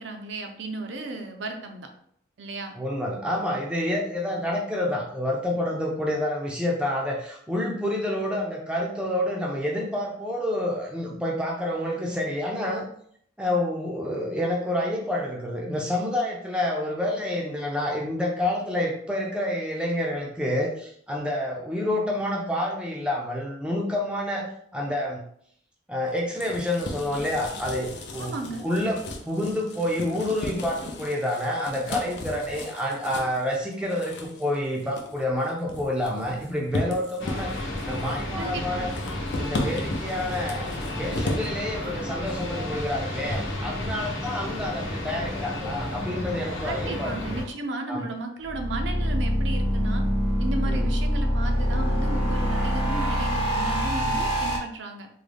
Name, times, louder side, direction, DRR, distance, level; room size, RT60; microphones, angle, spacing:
voice 1, 0.0-1.9 2.4-2.7 28.2-28.7 38.4-38.8 46.6-50.0 50.4-55.1, right 2 dB, 65° right, 4 dB, 0.5 m, -34 dB
voice 2, 2.7-12.9 13.4-25.2 25.9-28.3 28.6-38.9 39.4-40.7 40.9-47.2 47.9-48.1 50.7-50.9, left 1 dB, 5° right, -2 dB, 0.4 m, -28 dB
sound 1, 26.1-41.5, left 2 dB, 60° left, 0.5 m, -36 dB
sound 2, 37.2-47.4, left 1 dB, 75° left, 0.9 m, -32 dB
sound 3, 48.4-54.6, equal, 25° left, 0.7 m, -25 dB
3.7 x 2.1 x 3.3 m, 0.65 s
head